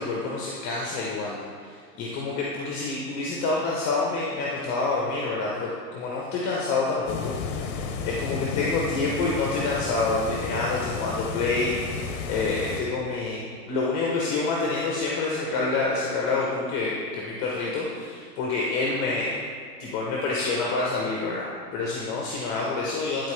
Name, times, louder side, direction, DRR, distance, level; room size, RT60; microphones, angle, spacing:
voice 1, 0.0-13.4 13.7-19.4 19.8-23.3, left 3 dB, 35° left, -4 dB, 1.2 m, -27 dB
sound 1, 7.1-12.8, left 5 dB, 60° left, 1.0 m, -32 dB
12.5 x 4.3 x 3.3 m, 2.1 s
hypercardioid pair, 115°, 49 cm